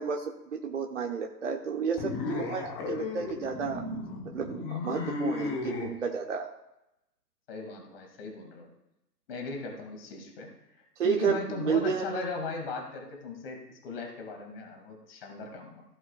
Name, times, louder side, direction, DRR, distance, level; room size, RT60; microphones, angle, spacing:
voice 1, 0.0-3.8 4.2-6.5 11.0-12.2, right 6 dB, 50° right, 2 dB, 1.1 m, -31 dB
sound 1, 2.0-5.9, left 3 dB, 20° left, 1.1 m, -34 dB
voice 2, 7.5-8.7 9.3-10.5 11.0-15.8, left 4 dB, 35° left, 2 dB, 2.3 m, -38 dB
15.5 x 7.7 x 2.4 m, 0.87 s
figure-of-eight pair, 130°, 49 cm